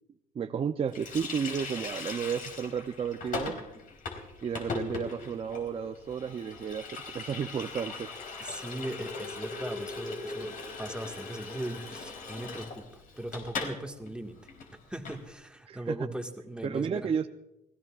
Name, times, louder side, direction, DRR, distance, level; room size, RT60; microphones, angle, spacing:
voice 1, 0.3-3.6 4.4-8.1 15.7-16.0 16.6-17.3, right 7 dB, 35° right, 7 dB, 0.6 m, -32 dB
Water tap faucet, 0.9-13.8 14.1-14.2 14.5-15.2, left 4 dB, 55° left, 3.7 m, -39 dB
voice 2, 8.4-14.4 14.9-17.1, right 1 dB, 5° right, 3 dB, 1.7 m, -39 dB
29.0 x 18.5 x 2.4 m, 0.93 s
cardioid pair, 110°, 17 cm